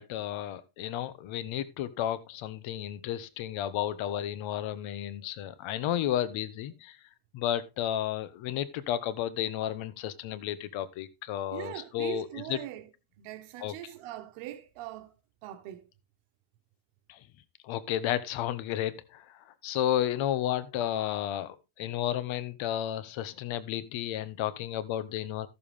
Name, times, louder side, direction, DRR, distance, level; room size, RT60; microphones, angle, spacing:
voice 1, 0.0-7.0 7.3-12.6 13.6-13.9 17.1-17.2 17.6-25.5, left 11 dB, 70° left, 1.3 m, -32 dB
voice 2, 11.5-12.9 13.2-15.1 15.4-15.8, right 14 dB, 80° right, 1.6 m, -41 dB
13.5 x 7.1 x 3.5 m
cardioid pair, 125°, 49 cm